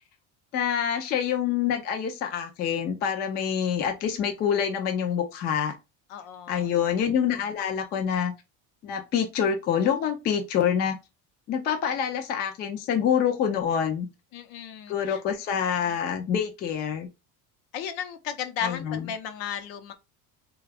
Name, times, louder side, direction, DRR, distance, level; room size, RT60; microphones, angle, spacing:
voice 1, 0.5-5.7 6.5-8.3 8.8-11.0 11.5-14.1 14.9-17.1 18.6-19.1, left 8 dB, 25° left, 0.4 m, -26 dB
voice 2, 6.1-6.7 14.3-15.2 17.7-19.9, left 8 dB, 70° left, 0.8 m, -34 dB
3.9 x 2.3 x 3.3 m
cardioid pair, 175°, 38 cm